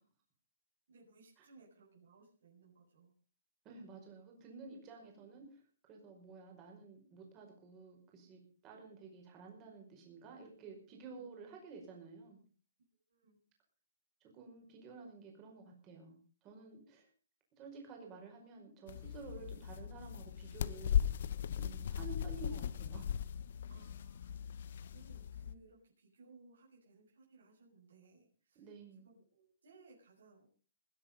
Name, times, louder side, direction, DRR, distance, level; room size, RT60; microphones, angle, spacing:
voice 1, 0.9-3.1 4.9-5.1 11.1-12.0 13.1-13.4 19.3-19.5 23.7-28.7 29.0-30.5, right 3 dB, 75° right, -3 dB, 6.3 m, -63 dB
voice 2, 3.7-5.4 5.8-12.4 14.2-17.1 17.6-21.0 21.6-23.1 28.6-29.1, right 4 dB, 20° right, 1 dB, 5.2 m, -52 dB
sound 1, 18.9-25.6, left 9 dB, 55° left, 0.9 m, -38 dB
20.5 x 10.5 x 5.3 m, 0.40 s
hypercardioid pair, 165°, 0 cm